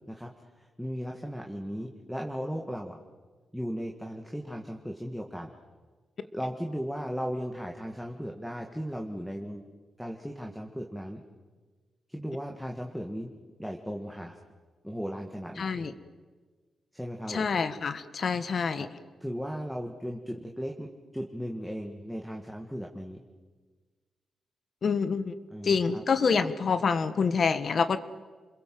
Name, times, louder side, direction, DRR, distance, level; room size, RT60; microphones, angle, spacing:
voice 1, 0.6-3.0 3.5-5.5 6.3-9.6 10.0-11.2 12.1-13.3 13.6-14.4 14.8-15.9 16.9-17.4 18.8-18.9 19.2-20.9 21.1-23.2 25.5-26.0, equal, ahead, 2 dB, 2.0 m, -36 dB
voice 2, 15.6-15.9 17.3-18.9 24.8-25.3 25.6-28.0, left 5 dB, 55° left, 12 dB, 1.5 m, -27 dB
29.5 x 22.0 x 7.8 m, 1.4 s
cardioid pair, 95°, 0 cm